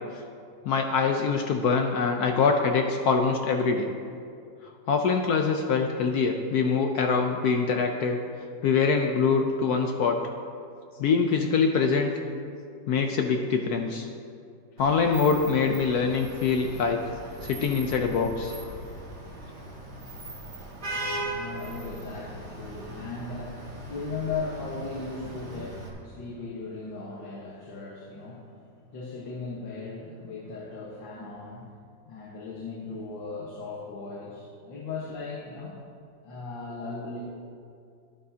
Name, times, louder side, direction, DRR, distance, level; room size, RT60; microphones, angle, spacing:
voice 1, 0.6-3.9 4.9-8.2 8.6-10.2 11.0-12.1 12.9-14.1 14.8-17.0 17.4-18.5, left 5 dB, 65° left, 3 dB, 1.0 m, -24 dB
Vehicle horn car horn honking / Traffic noise roadway noise, 14.8-25.9, right 1 dB, 40° right, 1.7 m, -39 dB
voice 2, 20.9-31.8 32.1-35.8 36.2-37.2, left 4 dB, 85° left, -5 dB, 2.0 m, -37 dB
11.5 x 11.5 x 2.8 m, 2.3 s
omnidirectional pair, 2.0 m